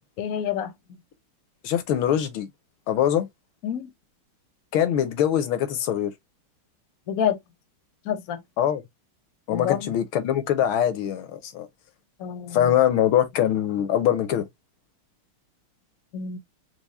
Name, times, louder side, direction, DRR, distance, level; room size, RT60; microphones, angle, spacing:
voice 1, 0.2-0.7 3.6-3.9 7.1-7.4 8.1-8.4 9.5-9.8 12.2-12.6 16.1-16.4, left 9 dB, 60° left, 1.0 m, -27 dB
voice 2, 1.6-2.5 2.9-3.3 4.7-6.1 8.6-8.8 9.5-11.7 12.5-14.5, left 10 dB, 75° left, 1.5 m, -23 dB
4.7 x 2.1 x 4.0 m
omnidirectional pair, 2.4 m